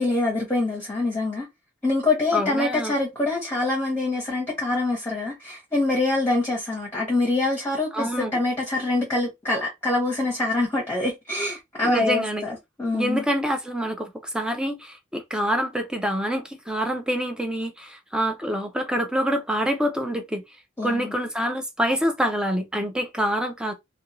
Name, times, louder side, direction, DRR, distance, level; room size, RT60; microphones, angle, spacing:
voice 1, 0.0-1.5 1.8-13.2 20.8-21.1, left 2 dB, 10° left, 0.9 m, -25 dB
voice 2, 2.3-2.9 7.9-8.3 11.8-12.4 12.9-20.4 20.8-23.7, equal, 5° right, 0.5 m, -26 dB
2.6 x 2.2 x 2.9 m
head